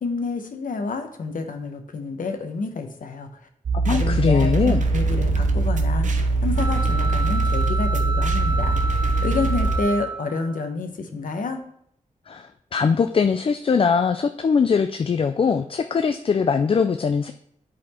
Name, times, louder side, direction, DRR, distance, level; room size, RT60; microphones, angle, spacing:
voice 1, 0.0-3.3 3.9-8.7 9.2-11.6, left 3 dB, 80° left, 6 dB, 1.0 m, -29 dB
sound 1, 3.7-9.8, right 3 dB, 65° right, 0.8 m, -22 dB
voice 2, 3.9-4.9 12.3-17.3, left 5 dB, 40° left, 8 dB, 0.4 m, -21 dB
sound 2, 6.5-10.6, right 2 dB, 35° right, 0.8 m, -30 dB
10.0 x 4.2 x 4.3 m, 0.68 s
wide cardioid pair, 145°, 14 cm